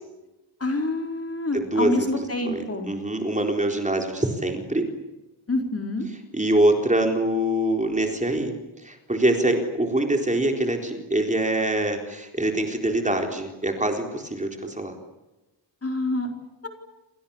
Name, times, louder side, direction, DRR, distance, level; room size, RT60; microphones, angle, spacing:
voice 1, 0.6-2.9 5.5-6.1 15.8-16.3 16.6-16.7, left 2 dB, 30° left, 4 dB, 4.5 m, -27 dB
voice 2, 1.5-2.0 2.4-4.9 6.3-8.5 8.8-15.0, right 1 dB, 15° right, 3 dB, 4.0 m, -24 dB
29.0 x 27.0 x 7.2 m, 1.0 s
wide cardioid pair, 165°, 47 cm